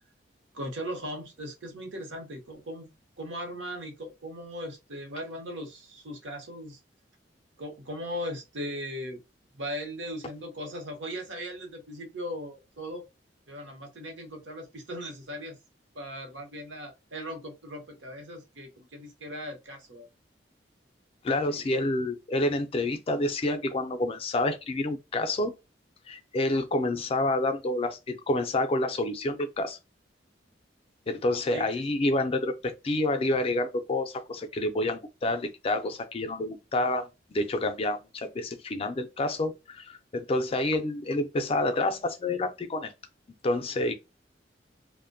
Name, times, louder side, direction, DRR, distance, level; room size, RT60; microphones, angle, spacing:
voice 1, 0.5-2.9 3.2-6.8 7.6-9.2 9.5-13.0 13.5-15.6 15.9-20.1 21.5-21.8 31.5-31.7, equal, 85° right, 0.8 m, -38 dB
voice 2, 21.2-25.5 26.1-29.8 31.1-42.9 43.4-43.9, left 2 dB, 30° left, 0.4 m, -28 dB
2.5 x 2.1 x 2.5 m
head